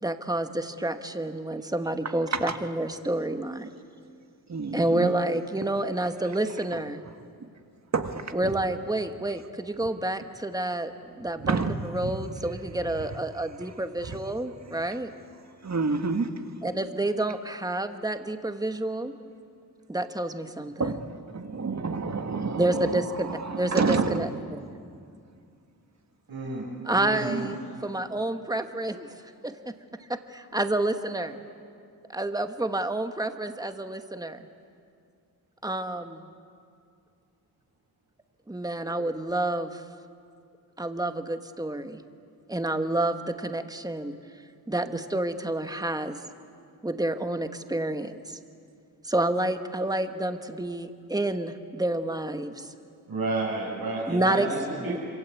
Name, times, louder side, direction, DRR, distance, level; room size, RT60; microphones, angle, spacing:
voice 1, 0.0-3.7 4.7-7.0 8.3-15.1 16.6-19.1 19.9-20.9 22.6-23.3 23.6-24.6 26.8-27.5 27.8-29.7 30.1-31.4 32.1-34.4 35.6-36.3 38.5-39.8 40.8-42.0 42.5-44.1 44.7-46.2 46.8-48.4 49.0-52.7 54.1-54.5 54.7-55.0, right 1 dB, 10° right, 1.4 m, -29 dB
voice 2, 4.5-5.1 7.9-8.3 11.4-12.1 14.1-14.2 15.6-16.3 20.8-24.3 27.3-27.5, right 4 dB, 45° right, 1.9 m, -29 dB
voice 3, 26.3-26.7 26.9-27.3 53.1-55.0, right 2 dB, 70° right, 6.6 m, -31 dB
26.5 x 26.0 x 8.4 m
wide cardioid pair, 110°, 38 cm